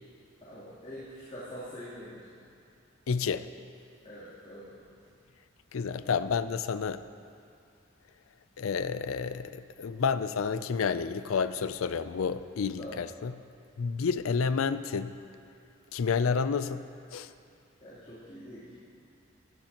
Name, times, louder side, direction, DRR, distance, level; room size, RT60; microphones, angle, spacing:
voice 1, 0.4-2.3 4.0-4.8 5.9-6.0 12.8-13.0 17.8-18.7, equal, 30° left, -13 dB, 3.1 m, -44 dB
voice 2, 3.1-3.5 5.7-7.0 8.6-13.3 13.8-15.2 15.9-17.3, left 5 dB, 80° left, 12 dB, 0.4 m, -30 dB
16.5 x 13.0 x 2.9 m, 2.4 s
head